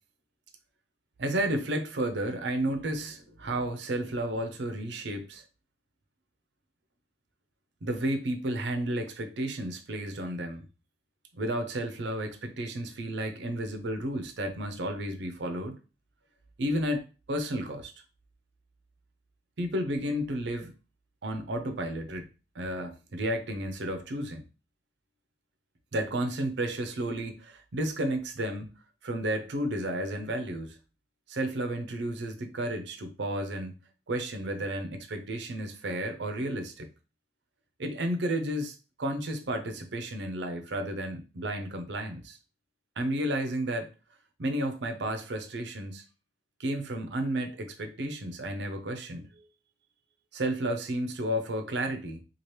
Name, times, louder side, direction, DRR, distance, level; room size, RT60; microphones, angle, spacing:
voice 1, 1.2-5.4 7.8-10.6 11.4-15.8 16.6-17.9 19.6-20.7 21.2-22.3 22.5-24.4 25.9-28.7 29.0-30.8 31.3-33.8 34.1-36.9 37.8-42.4 43.0-43.9 44.4-46.0 46.6-49.3 50.3-52.2, right 1 dB, 75° right, 0.6 m, -32 dB
2.9 x 2.4 x 3.2 m
head